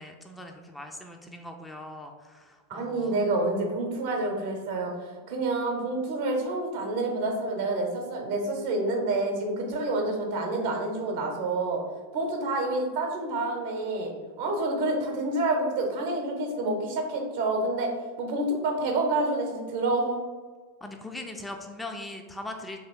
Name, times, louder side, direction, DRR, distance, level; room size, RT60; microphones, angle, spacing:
voice 1, 0.0-3.2 20.8-22.8, left 2 dB, 5° left, 3 dB, 0.4 m, -40 dB
voice 2, 2.7-4.9 5.3-11.8 12.1-17.9 18.2-20.2, right 2 dB, 55° right, 2 dB, 0.8 m, -28 dB
3.0 x 2.8 x 4.4 m, 1.5 s
figure-of-eight pair, 90°, 0 cm